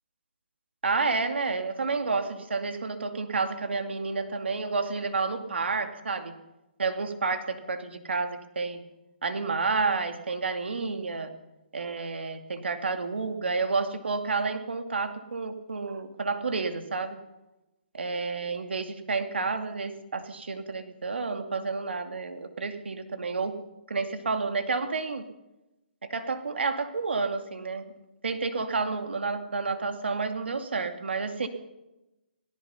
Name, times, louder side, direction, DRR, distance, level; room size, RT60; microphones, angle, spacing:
voice 1, 0.8-6.3 6.8-8.8 9.2-11.3 11.7-17.2 17.9-23.5 23.9-25.2 26.1-27.8 28.2-31.5, right 4 dB, 90° right, 7 dB, 2.4 m, -30 dB
26.5 x 17.5 x 5.7 m, 1.0 s
hypercardioid pair, 160°, 6 cm